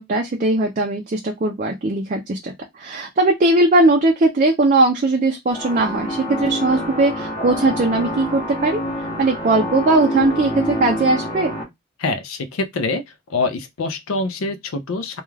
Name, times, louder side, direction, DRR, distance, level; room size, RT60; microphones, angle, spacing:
voice 1, 0.0-8.8 9.2-11.5, right 2 dB, 40° right, 0.4 m, -19 dB
sound 1, 5.5-11.6, equal, 20° left, 0.8 m, -27 dB
voice 2, 12.0-13.0 13.3-15.2, left 3 dB, 80° left, 0.4 m, -25 dB
2.3 x 2.3 x 3.1 m
head